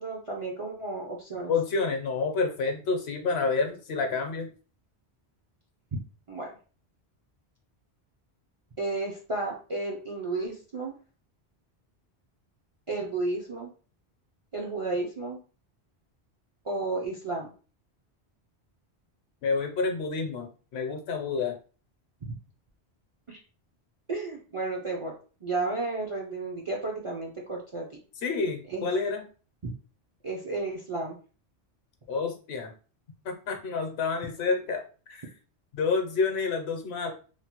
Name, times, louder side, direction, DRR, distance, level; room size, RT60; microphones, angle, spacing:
voice 1, 0.0-1.5 5.9-6.0 6.3-6.5 8.8-10.9 12.9-13.7 14.5-15.4 16.6-17.5 23.3-23.4 24.1-25.1 25.4-27.8 28.7-28.9 29.6-29.7 30.2-31.2, right 2 dB, 45° right, -2 dB, 0.4 m, -32 dB
voice 2, 1.5-4.5 19.4-21.6 28.2-29.2 32.1-32.7 33.2-34.8 35.1-35.2 35.7-37.1, left 4 dB, 70° left, 5 dB, 0.9 m, -29 dB
3.1 x 2.1 x 2.8 m, 0.37 s
omnidirectional pair, 1.1 m